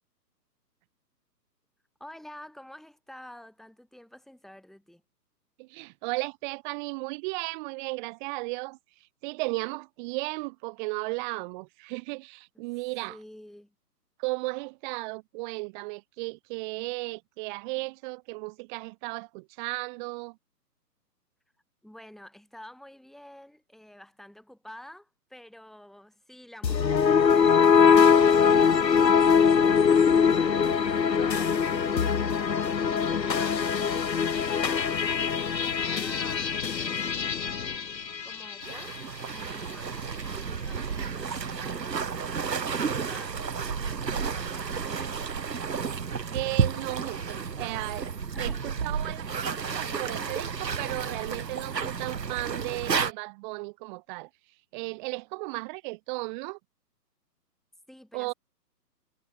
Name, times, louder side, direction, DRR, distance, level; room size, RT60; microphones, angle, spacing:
voice 1, 2.0-5.0 13.1-13.7 21.8-37.5 38.2-39.0 39.3-45.3 48.3-48.7 49.0-49.2 57.9-58.3, left 1 dB, ahead, 7.4 m, -49 dB
voice 2, 5.6-8.8 9.2-13.2 14.2-20.4 46.3-48.1 48.4-54.3 54.7-56.6 58.1-58.3, right 27 dB, 30° right, 5.8 m, -35 dB
sound 1, 26.6-39.0, left 6 dB, 85° left, 1.6 m, -22 dB
sound 2, 38.6-53.1, right 6 dB, 80° right, 2.6 m, -32 dB
hypercardioid pair, 140°, 49 cm